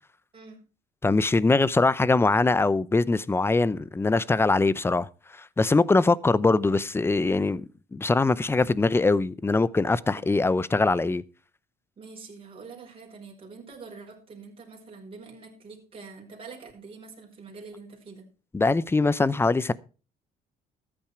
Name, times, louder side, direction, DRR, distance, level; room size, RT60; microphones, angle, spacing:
voice 1, 1.0-11.2 18.5-19.7, left 3 dB, 15° left, 0.6 m, -22 dB
voice 2, 12.0-18.3, right 4 dB, 35° right, 4.7 m, -45 dB
13.5 x 8.8 x 4.5 m
cardioid pair, 110°, 17 cm